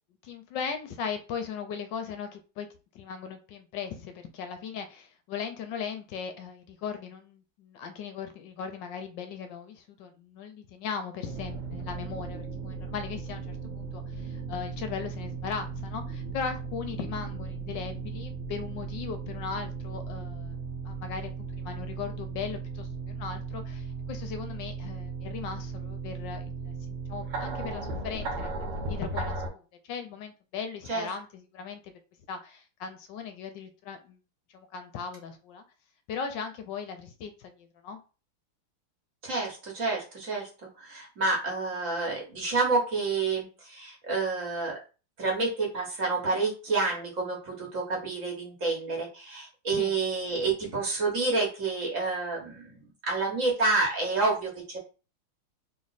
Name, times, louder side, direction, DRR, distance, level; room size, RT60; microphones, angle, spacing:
voice 1, 0.2-2.7 2.9-28.5 28.9-31.9 32.3-34.2 34.5-35.6 36.1-38.0 49.7-49.9, left 6 dB, 70° left, 7 dB, 1.2 m, -38 dB
the apples are insane, 11.2-29.5, right 4 dB, 60° right, 1.7 m, -36 dB
voice 2, 39.2-40.5 40.8-44.7 45.2-52.7 53.0-54.8, right 3 dB, 45° right, -1 dB, 1.4 m, -29 dB
3.2 x 3.2 x 4.0 m, 0.33 s
omnidirectional pair, 2.4 m